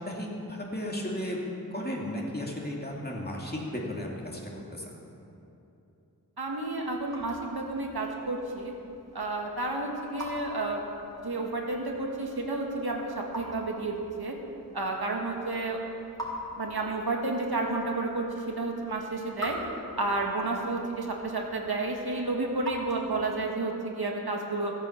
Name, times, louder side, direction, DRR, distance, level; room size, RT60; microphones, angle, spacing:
voice 1, 0.1-1.4 1.7-5.0, left 1 dB, 25° left, -2 dB, 2.4 m, -35 dB
Raindrop / Drip, 6.4-23.6, equal, 10° left, 3.5 m, -45 dB
voice 2, 6.4-8.7 9.1-10.8 11.2-14.3 14.7-15.8 16.6-19.6 20.0-24.7, right 2 dB, 80° right, 0 dB, 1.8 m, -31 dB
15.0 x 8.6 x 7.0 m, 2.8 s
wide cardioid pair, 65°, 37 cm